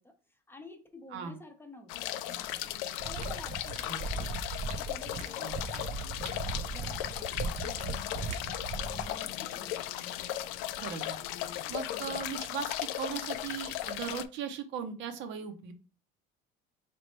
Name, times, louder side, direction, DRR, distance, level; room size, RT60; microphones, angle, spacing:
voice 1, 0.0-2.7 3.1-4.1 4.8-9.8, left 1 dB, 10° left, 5 dB, 0.6 m, -52 dB
sound 1, 1.9-14.3, left 13 dB, 85° left, 0.4 m, -36 dB
sound 2, 3.0-9.1, right 4 dB, 35° right, 0.4 m, -38 dB
voice 2, 10.8-11.1 11.7-15.7, right 7 dB, 65° right, 8 dB, 0.8 m, -38 dB
4.1 x 3.0 x 3.1 m, 0.37 s
cardioid pair, 115°, 21 cm